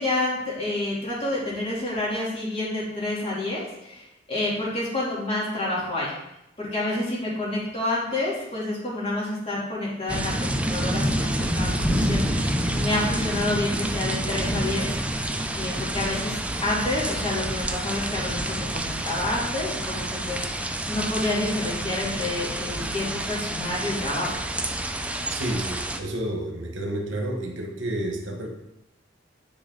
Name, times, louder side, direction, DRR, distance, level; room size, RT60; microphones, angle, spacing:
voice 1, 0.0-6.1 6.6-15.0 15.5-24.4, left 2 dB, 30° left, -6 dB, 3.0 m, -29 dB
sound 1, 10.1-26.0, right 1 dB, 5° right, 0.5 m, -28 dB
voice 2, 25.3-28.5, right 1 dB, 75° right, 2 dB, 1.3 m, -30 dB
9.7 x 5.2 x 3.9 m, 0.85 s
head